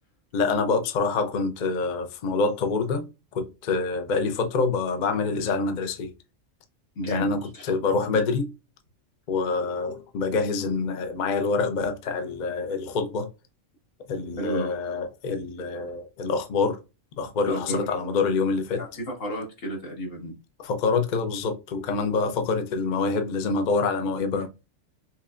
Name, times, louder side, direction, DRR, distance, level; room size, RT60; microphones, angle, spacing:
voice 1, 0.3-6.1 7.1-8.5 9.3-13.3 14.1-16.8 17.2-18.8 20.6-24.5, left 4 dB, 55° left, 0.5 m, -26 dB
voice 2, 7.0-7.7 14.4-14.7 17.5-17.9 18.8-20.3, equal, 75° left, 1.9 m, -32 dB
5.6 x 2.2 x 2.4 m
omnidirectional pair, 1.3 m